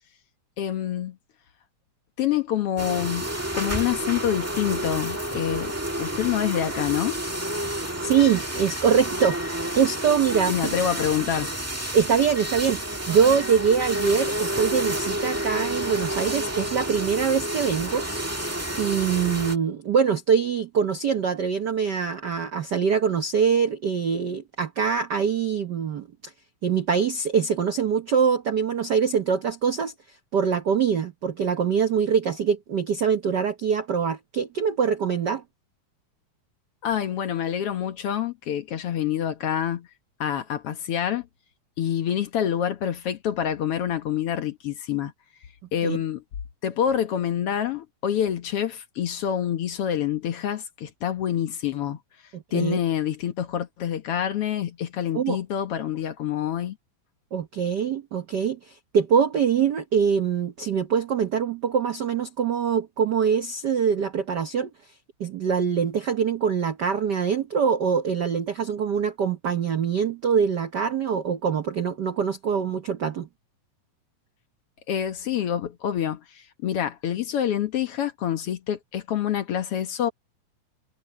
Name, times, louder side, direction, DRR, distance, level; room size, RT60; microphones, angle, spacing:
voice 1, 0.6-1.2 2.2-7.2 10.5-11.5 36.8-39.9 40.2-41.3 41.8-45.1 45.7-46.2 46.6-52.0 52.5-56.8 74.9-80.1, left 10 dB, 60° left, 1.8 m, -27 dB
sound 1, 2.8-19.6, right 1 dB, 10° right, 0.9 m, -30 dB
voice 2, 8.0-10.8 11.9-18.1 18.8-26.3 26.6-35.4 45.8-46.0 52.3-52.8 55.1-55.4 57.3-64.9 65.2-73.3, right 7 dB, 75° right, 0.9 m, -24 dB
omnidirectional pair, 3.4 m